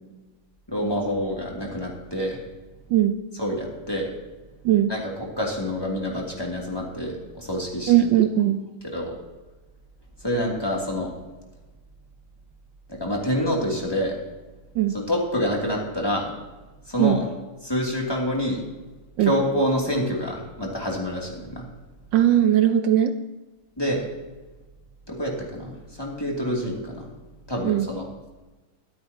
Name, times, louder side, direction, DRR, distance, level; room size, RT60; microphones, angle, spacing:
voice 1, 0.7-2.4 3.4-4.1 4.9-7.9 8.8-9.1 10.2-11.1 12.9-14.2 14.9-16.3 16.9-17.3 17.6-18.6 19.2-21.6 23.8-24.0 25.1-25.7 26.0-27.1 27.5-28.1, equal, 10° left, -2 dB, 2.6 m, -27 dB
voice 2, 7.9-8.6 14.8-15.0 17.0-17.2 19.2-19.3 22.1-23.1 27.6-27.9, right 12 dB, 70° right, 9 dB, 1.1 m, -19 dB
24.5 x 8.6 x 2.9 m, 1.2 s
omnidirectional pair, 2.4 m